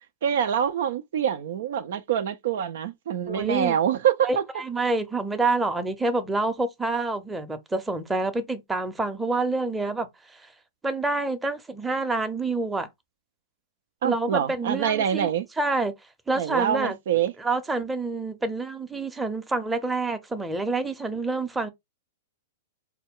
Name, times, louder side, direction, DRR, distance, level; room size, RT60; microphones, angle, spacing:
voice 1, 0.2-4.4 14.0-15.5 16.4-17.3, right 9 dB, 65° right, 0.4 m, -25 dB
voice 2, 3.3-3.8 4.2-10.5 10.8-12.9 14.0-15.3 15.6-15.9 16.3-17.0 17.4-21.7, right 3 dB, 10° right, 0.7 m, -27 dB
4.3 x 2.2 x 3.6 m
hypercardioid pair, 110°, 0 cm